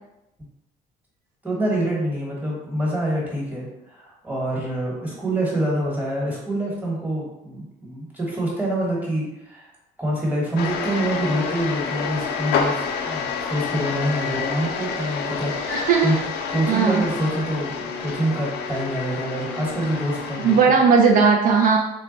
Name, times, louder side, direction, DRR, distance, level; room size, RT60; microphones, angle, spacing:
voice 1, 1.4-9.7 10.0-16.1 16.5-20.7, right 1 dB, 10° right, -3 dB, 1.2 m, -26 dB
sound 1, 10.6-20.6, left 5 dB, 80° left, 0.5 m, -28 dB
voice 2, 15.7-16.1 16.7-17.0 20.4-21.8, right 5 dB, 55° right, 2 dB, 0.4 m, -17 dB
3.4 x 2.1 x 3.8 m, 0.91 s
cardioid pair, 110°, 17 cm